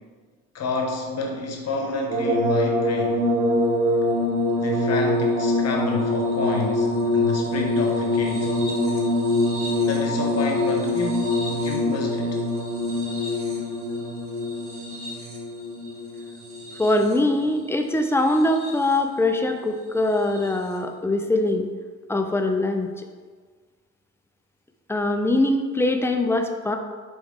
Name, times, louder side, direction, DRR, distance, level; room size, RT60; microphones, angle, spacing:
voice 1, 0.5-3.3 4.6-8.5 9.8-12.4, left 3 dB, 55° left, 1 dB, 0.9 m, -29 dB
sound 1, 2.1-17.3 18.2-18.9 20.3-20.5, left 1 dB, 45° right, 1.0 m, -24 dB
voice 2, 16.8-21.7 22.1-23.1 24.9-26.8, left 1 dB, 10° left, 5 dB, 0.4 m, -22 dB
4.6 x 3.1 x 3.6 m, 1.5 s
cardioid pair, 90°, 30 cm